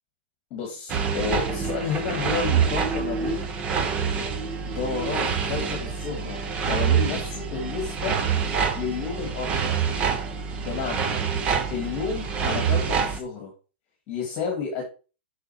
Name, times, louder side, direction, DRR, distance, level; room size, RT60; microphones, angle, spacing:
voice 1, 0.5-3.5 4.6-8.2 8.7-9.7 10.6-11.1 11.7-13.5 14.1-14.8, left 5 dB, 25° left, 1 dB, 2.1 m, -31 dB
sound 1, 0.9-13.2, right 6 dB, 15° right, 0.8 m, -26 dB
6.7 x 6.3 x 4.4 m, 0.34 s
hypercardioid pair, 165°, 6 cm